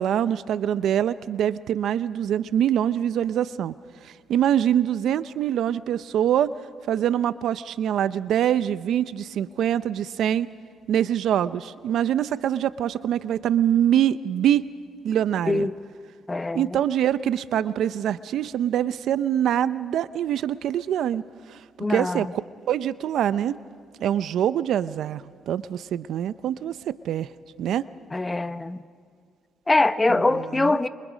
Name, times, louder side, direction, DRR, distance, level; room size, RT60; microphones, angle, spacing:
voice 1, 0.0-3.7 4.0-6.5 6.9-10.5 10.9-14.7 15.0-15.7 16.5-21.2 21.5-21.6 21.9-22.4 22.7-23.6 24.0-27.3 27.6-27.9 30.1-30.8, right 10 dB, 75° right, 15 dB, 0.6 m, -24 dB
voice 2, 16.3-16.8 21.8-22.3 28.1-28.8 29.7-30.9, left 2 dB, 20° left, 12 dB, 0.8 m, -23 dB
28.0 x 24.5 x 5.1 m, 2.1 s
cardioid pair, 90°, 0 cm